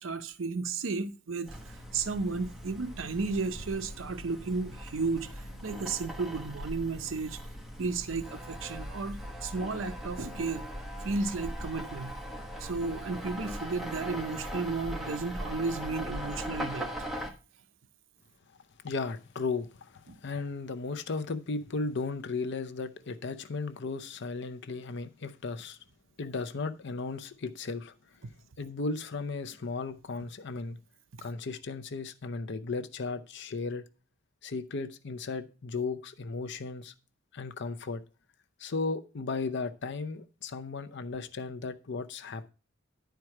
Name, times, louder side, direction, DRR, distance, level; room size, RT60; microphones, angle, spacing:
voice 1, 0.0-7.4 7.8-10.7 11.0-12.2 12.6-16.9 20.1-20.2 31.1-31.3, right 4 dB, 75° right, 0.6 m, -33 dB
sound 1, 1.5-17.3, equal, ahead, 1.2 m, -40 dB
voice 2, 18.8-25.8 26.2-27.9 28.6-30.8 31.2-33.8 34.4-36.9 37.3-38.0 38.6-42.5, left 4 dB, 60° left, 0.6 m, -35 dB
10.5 x 4.6 x 4.7 m
head